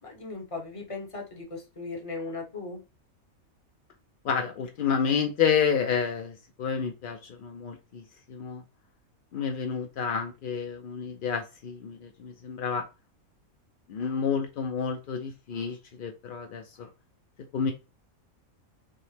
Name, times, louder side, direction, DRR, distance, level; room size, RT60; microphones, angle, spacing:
voice 1, 0.0-2.8, left 3 dB, 25° left, 1 dB, 1.0 m, -37 dB
voice 2, 4.2-8.6 9.3-12.8 13.9-16.9 17.5-17.7, left 6 dB, 70° left, 5 dB, 0.5 m, -30 dB
5.6 x 2.1 x 3.2 m, 0.28 s
omnidirectional pair, 1.5 m